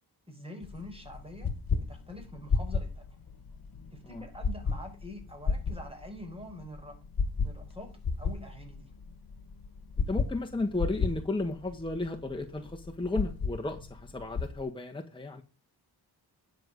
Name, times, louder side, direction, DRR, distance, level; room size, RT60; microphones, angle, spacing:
voice 1, 0.3-1.5 1.9-3.0 3.9-7.0 7.4-7.9 8.2-8.9, left 1 dB, 15° right, 3 dB, 4.7 m, -45 dB
sound 1, 0.6-14.6, left 4 dB, 60° left, 1.5 m, -34 dB
voice 2, 10.1-15.4, left 2 dB, 10° left, 2 dB, 1.4 m, -34 dB
10.5 x 6.5 x 5.3 m, 0.33 s
cardioid pair, 60°, 40 cm